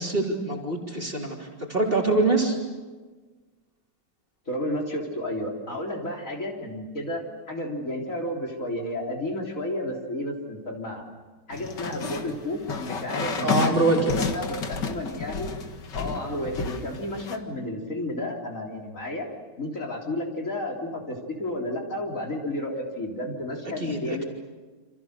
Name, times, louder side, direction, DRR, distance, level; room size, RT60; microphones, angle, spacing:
voice 1, 0.0-2.6 13.4-14.3 23.8-24.2, right 2 dB, 30° right, 0 dB, 3.8 m, -25 dB
voice 2, 4.5-11.1 11.5-13.5 13.9-15.5 15.9-19.3 19.6-24.3, left 1 dB, 45° left, 0 dB, 4.1 m, -32 dB
sound 1, 11.5-17.4, left 5 dB, 75° left, 2.4 m, -31 dB
28.5 x 27.5 x 6.7 m, 1.3 s
omnidirectional pair, 1.9 m